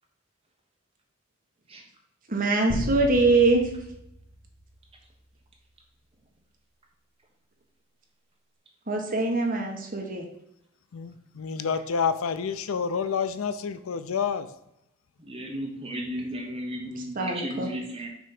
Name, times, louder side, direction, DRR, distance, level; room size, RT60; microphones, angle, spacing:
voice 1, 2.3-3.6 8.9-10.3 17.1-17.7, right 3 dB, 45° right, 1 dB, 1.3 m, -23 dB
sound 1, 2.7-5.3, equal, 65° right, 1.5 m, -36 dB
voice 2, 10.9-14.5, left 6 dB, 90° left, 12 dB, 0.5 m, -28 dB
voice 3, 15.2-18.1, equal, 30° right, 0 dB, 1.4 m, -34 dB
6.1 x 3.4 x 5.9 m, 0.82 s
head